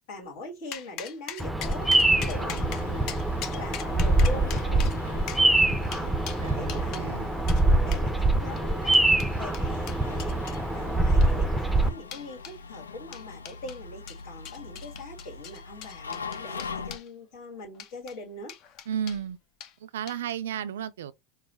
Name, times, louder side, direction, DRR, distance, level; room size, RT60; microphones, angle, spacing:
voice 1, 0.1-1.9 2.2-3.1 3.5-18.5, left 1 dB, 65° left, 1.7 m, -42 dB
sound 1, 0.7-7.1 7.5-7.6 7.9-8.1 8.6-10.6 11.1-11.6 12.1-12.6 13.1-13.8 14.1-17.1 17.7-18.2 18.5-19.2 19.6-19.7 20.1-20.4, left 9 dB, 50° left, 0.7 m, -41 dB
Bird vocalization bird call bird song, 1.4-11.9, right 2 dB, ahead, 0.6 m, -24 dB
sound 2, 1.8-17.0, left 4 dB, 85° left, 0.4 m, -43 dB
voice 2, 6.4-7.3 18.9-19.4 19.8-21.1, right 9 dB, 70° right, 0.3 m, -33 dB
4.7 x 2.2 x 4.0 m
figure-of-eight pair, 80°, 0 cm